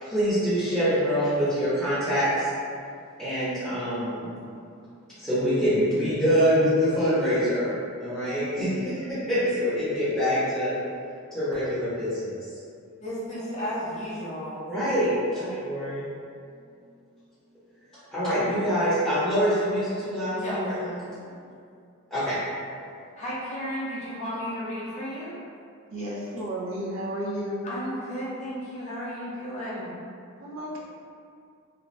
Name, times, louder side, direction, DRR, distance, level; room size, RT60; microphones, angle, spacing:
voice 1, 0.0-2.5 3.2-4.3 5.2-10.7 11.3-12.5 14.7-16.0 18.1-21.0 22.1-22.4, equal, 5° left, -16 dB, 0.8 m, -25 dB
voice 2, 13.0-14.7 20.4-20.6 23.2-25.3 26.0-26.1 27.6-29.9, equal, 35° left, -8 dB, 0.6 m, -33 dB
voice 3, 25.9-27.7 30.4-30.8, right 1 dB, 65° right, -5 dB, 0.4 m, -32 dB
2.5 x 2.2 x 3.1 m, 2.4 s
head